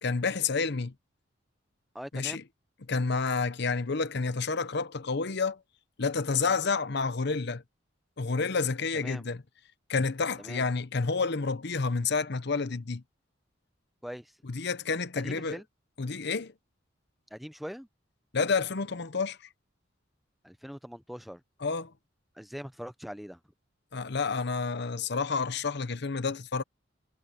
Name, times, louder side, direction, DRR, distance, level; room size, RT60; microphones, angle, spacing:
voice 1, 0.0-0.9 2.1-2.4 2.9-5.6 6.0-7.6 8.2-9.4 9.9-13.0 14.4-15.6 16.0-16.5 18.3-19.4 21.6-21.9 23.9-26.6, left 4 dB, 60° left, 0.9 m, -29 dB
voice 2, 1.9-2.4 8.9-9.2 10.4-10.6 14.0-14.3 15.2-15.6 17.3-17.9 20.4-21.4 22.4-23.4, equal, ahead, 0.5 m, -42 dB
head